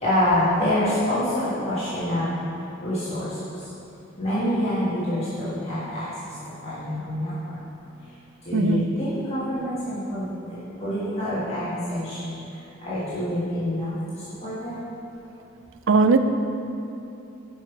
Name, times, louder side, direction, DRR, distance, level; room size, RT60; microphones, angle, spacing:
voice 1, 0.0-2.3 2.8-3.3 4.2-6.1 6.6-7.3 8.5-10.3 10.8-12.3 12.8-13.9 14.4-14.8, left 1 dB, 30° left, -12 dB, 1.5 m, -26 dB
voice 2, 8.5-8.9 15.9-16.2, right 4 dB, 65° right, 8 dB, 0.4 m, -18 dB
7.2 x 5.5 x 4.6 m, 2.8 s
head